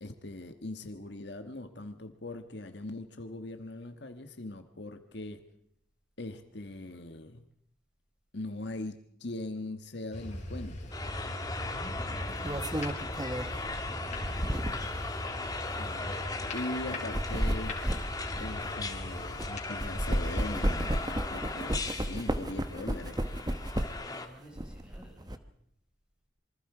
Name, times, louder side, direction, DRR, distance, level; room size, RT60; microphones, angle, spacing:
voice 1, 0.0-5.4 6.2-7.4 8.3-10.9 15.8-16.2 16.5-17.8 18.4-23.2, left 2 dB, 60° left, 1.4 m, -40 dB
sound 1, 10.1-20.6, left 1 dB, 35° left, 4.8 m, -40 dB
sound 2, 10.6-10.8 12.1-15.0 15.7-15.8 16.9-19.5 19.8-24.1 24.5-25.4, right 1 dB, 20° right, 1.1 m, -33 dB
sound 3, 10.9-24.3, left 3 dB, 20° left, 1.7 m, -38 dB
voice 2, 11.6-14.4 23.8-25.5, equal, 5° right, 5.3 m, -52 dB
27.0 x 24.0 x 4.9 m
head